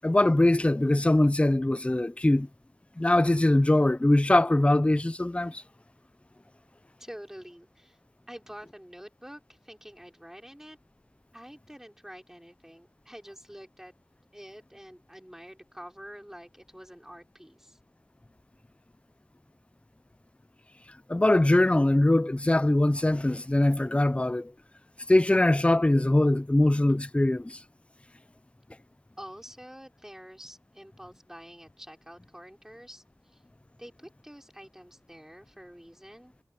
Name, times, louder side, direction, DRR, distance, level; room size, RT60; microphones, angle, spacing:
voice 1, 0.0-2.5 3.0-5.6 21.1-24.5 25.1-27.6, left 1 dB, 15° left, 0.5 m, -22 dB
voice 2, 7.0-8.0 8.3-10.8 11.3-13.9 14.3-17.8 29.2-33.4 33.8-36.3, equal, 5° right, 4.7 m, -47 dB
cardioid pair, 45°, 7 cm